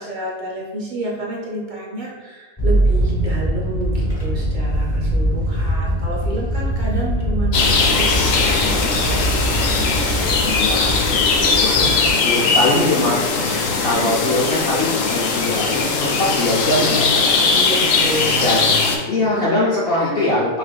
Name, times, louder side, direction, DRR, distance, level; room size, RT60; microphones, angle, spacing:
voice 1, 0.0-9.3 12.3-12.8 13.9-14.1 17.5-18.6 19.3-19.5, right 2 dB, 60° right, -4 dB, 0.5 m, -29 dB
sound 1, 2.6-12.1, right 1 dB, 25° left, 0.5 m, -22 dB
sound 2, 7.5-19.0, left 4 dB, 70° left, 0.8 m, -19 dB
voice 2, 10.4-17.4 18.4-18.6 19.1-20.6, left 2 dB, 90° left, -5 dB, 0.5 m, -22 dB
5.6 x 2.5 x 2.2 m, 1.3 s
omnidirectional pair, 1.7 m